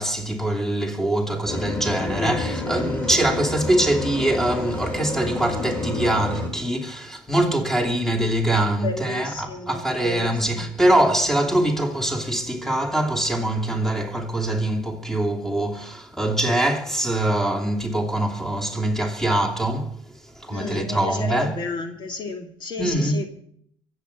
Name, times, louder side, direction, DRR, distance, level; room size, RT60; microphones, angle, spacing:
voice 1, 0.0-21.7 22.8-23.3, right 1 dB, 5° left, 2.8 m, -23 dB
sound 1, 1.5-6.5, left 2 dB, 20° left, 3.7 m, -29 dB
voice 2, 2.1-2.4 2.6-3.3 8.8-10.3 20.5-23.3, left 3 dB, 45° left, 2.3 m, -32 dB
23.5 x 8.2 x 5.8 m
cardioid pair, 95°, 11 cm